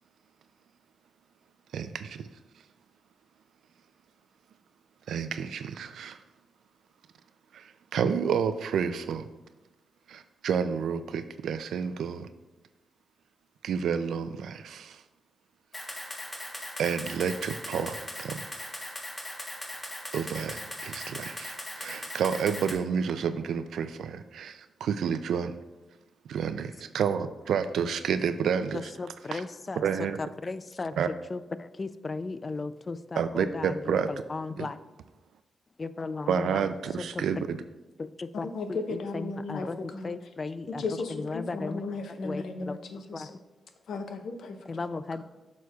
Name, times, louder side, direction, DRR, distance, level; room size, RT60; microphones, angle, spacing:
voice 1, 1.7-2.3 5.1-6.2 7.5-9.3 10.1-12.3 13.6-15.0 16.8-18.4 20.1-25.6 26.3-28.9 29.3-29.4 29.8-30.2 31.0-31.1 33.2-34.1 34.6-34.7 36.3-37.6, right 7 dB, 85° right, 10 dB, 0.3 m, -30 dB
Camera, 15.7-22.7, left 1 dB, 15° left, 1.2 m, -39 dB
voice 2, 28.7-29.8 30.2-31.0 31.3-34.8 35.8-37.2 38.0-38.5 38.9-41.8 42.2-43.3 44.6-45.2, left 3 dB, 35° left, 14 dB, 0.3 m, -36 dB
voice 3, 38.4-40.1 40.8-43.4 43.9-44.6, left 3 dB, 80° left, 6 dB, 0.8 m, -35 dB
9.4 x 6.3 x 2.3 m, 1.1 s
cardioid pair, 95°, 0 cm